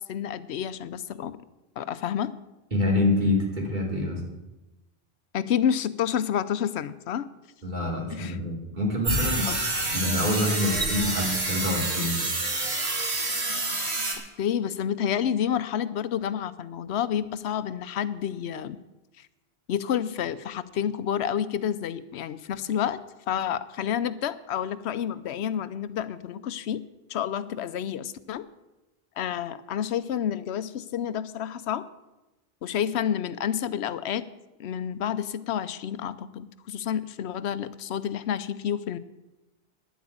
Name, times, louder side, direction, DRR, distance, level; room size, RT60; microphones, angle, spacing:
voice 1, 0.1-1.4 1.8-2.3 5.3-7.3 8.1-8.4 9.5-9.6 14.4-18.8 19.2-19.3 19.7-23.0 23.3-26.8 27.1-28.5 29.2-31.9 32.6-34.3 34.6-39.0, left 9 dB, 90° left, 14 dB, 0.9 m, -29 dB
voice 2, 2.7-4.2 7.6-9.5 9.9-12.3, left 2 dB, 45° right, -1 dB, 3.1 m, -26 dB
sound 1, 9.0-14.2, right 2 dB, 80° right, 2.4 m, -28 dB
10.5 x 8.2 x 8.6 m, 1.0 s
omnidirectional pair, 1.1 m